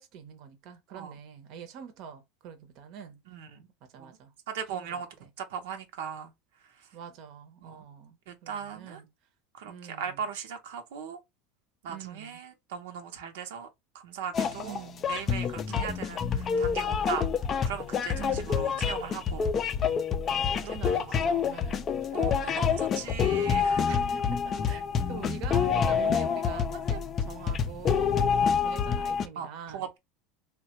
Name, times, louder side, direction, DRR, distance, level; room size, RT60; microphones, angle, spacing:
voice 1, 0.0-3.2 3.8-4.3 4.7-5.3 6.9-9.1 9.6-10.3 11.8-12.4 14.6-15.1 15.7-16.2 18.1-18.8 20.3-22.4 23.9-29.9, right 7 dB, 50° right, 0.7 m, -45 dB
voice 2, 3.3-3.6 4.0-4.2 4.5-5.1 5.4-6.3 7.6-7.8 8.3-9.0 9.6-11.2 11.8-13.7 13.9-17.3 17.6-19.5 22.1-23.9 29.4-30.0, right 7 dB, 85° right, 0.7 m, -38 dB
sound 1, 14.3-29.3, left 6 dB, 30° left, 0.4 m, -27 dB
3.2 x 2.2 x 2.9 m
supercardioid pair, 145°, 0 cm